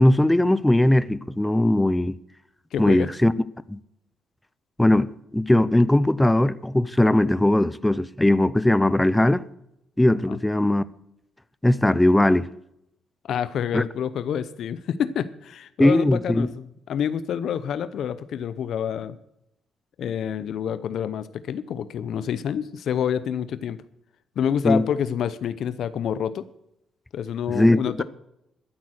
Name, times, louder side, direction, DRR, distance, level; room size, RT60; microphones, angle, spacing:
voice 1, 0.0-2.2 2.8-3.3 3.7-3.8 4.8-9.4 10.0-10.8 11.6-12.5 13.7-13.8 15.8-16.5 24.6-24.9 27.5-28.0, left 1 dB, 10° left, 0.5 m, -19 dB
voice 2, 2.7-3.1 10.3-10.4 13.2-19.2 20.0-23.8 24.4-26.4 27.1-28.0, left 8 dB, 70° left, 0.6 m, -28 dB
13.0 x 8.4 x 6.4 m
cardioid pair, 90°, 0 cm